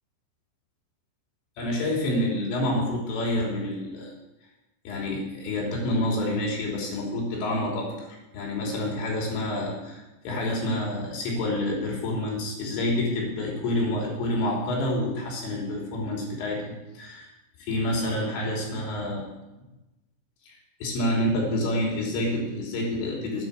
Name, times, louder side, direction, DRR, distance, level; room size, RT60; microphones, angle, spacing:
voice 1, 1.6-4.1 4.9-17.3 17.7-19.3 20.5-23.4, left 1 dB, 70° left, -1 dB, 5.8 m, -28 dB
11.0 x 10.5 x 9.3 m, 1.0 s
omnidirectional pair, 5.9 m